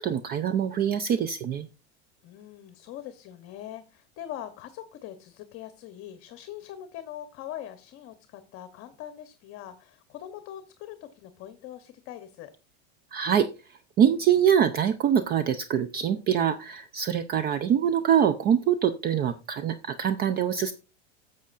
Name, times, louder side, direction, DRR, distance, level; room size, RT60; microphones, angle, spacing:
voice 1, 0.0-1.7 13.1-20.7, right 9 dB, 30° right, 12 dB, 0.5 m, -24 dB
voice 2, 2.2-12.5, left 11 dB, 40° left, 10 dB, 0.9 m, -42 dB
11.5 x 7.5 x 2.5 m, 0.30 s
supercardioid pair, 120°, 33 cm